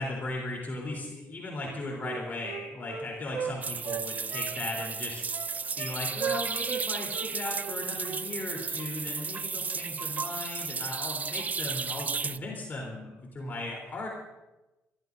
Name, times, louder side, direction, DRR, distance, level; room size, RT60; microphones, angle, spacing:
voice 1, 0.0-5.2 5.8-14.1, left 2 dB, 40° left, -2 dB, 3.6 m, -37 dB
Wind instrument woodwind instrument, 1.6-3.5 3.8-5.0 5.3-5.9 6.2-6.9 7.1-7.3 7.6-8.2 8.5-8.7, right 7 dB, 65° right, 1.5 m, -36 dB
sound 1, 3.6-12.4, right 5 dB, 35° right, 0.3 m, -34 dB
27.5 x 13.0 x 2.7 m, 1.0 s
cardioid pair, 80°, 5 cm